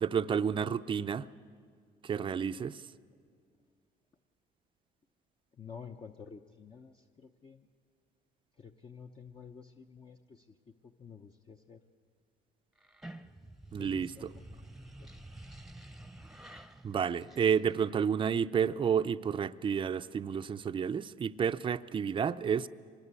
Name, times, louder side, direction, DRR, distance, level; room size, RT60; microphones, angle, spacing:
voice 1, 0.0-1.3 2.0-2.8 13.7-14.3 16.8-22.7, right 7 dB, 30° right, 0.6 m, -30 dB
voice 2, 5.5-7.7 8.6-10.6 10.8-11.8 13.8-14.7 15.0-15.2, left 6 dB, 30° left, 0.8 m, -51 dB
sound 1, 12.8-18.1, right 1 dB, ahead, 1.0 m, -50 dB
25.0 x 20.0 x 8.3 m
cardioid pair, 110°, 17 cm